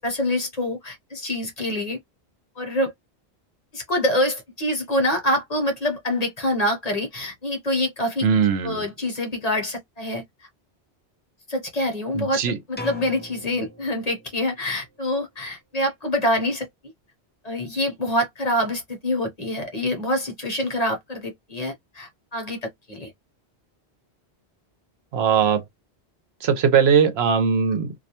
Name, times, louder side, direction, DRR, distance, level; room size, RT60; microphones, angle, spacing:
voice 1, 0.0-2.0 2.6-2.9 3.7-8.3 8.6-10.2 11.5-12.4 12.7-16.7 17.4-23.1, left 1 dB, 40° left, 0.8 m, -26 dB
voice 2, 8.2-8.8 12.1-12.6 25.1-25.6 26.4-27.9, right 7 dB, 75° right, 0.9 m, -20 dB
sound 1, 12.8-14.6, left 1 dB, 15° left, 0.3 m, -39 dB
2.3 x 2.2 x 2.8 m
omnidirectional pair, 1.1 m